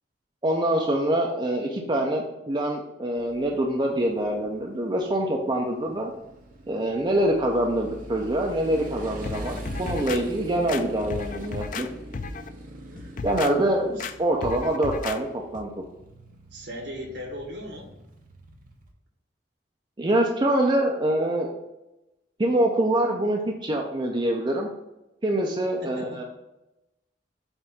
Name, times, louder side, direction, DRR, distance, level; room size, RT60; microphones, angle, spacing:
voice 1, 0.4-6.1 6.7-11.9 13.2-15.7 20.0-21.5 22.4-24.7 25.2-26.2, right 1 dB, 25° right, 0 dB, 0.7 m, -25 dB
Motorcycle, 3.1-18.9, right 1 dB, 50° right, 1.0 m, -43 dB
sound 1, 9.2-10.2 10.7-11.9 12.1-12.5 13.0-13.5 14.0-14.1 14.4-15.2 15.5-15.7, left 4 dB, 50° left, 0.4 m, -34 dB
voice 2, 16.5-17.9 25.8-26.2, equal, 70° right, 0 dB, 1.9 m, -38 dB
7.9 x 2.7 x 5.8 m, 0.92 s
head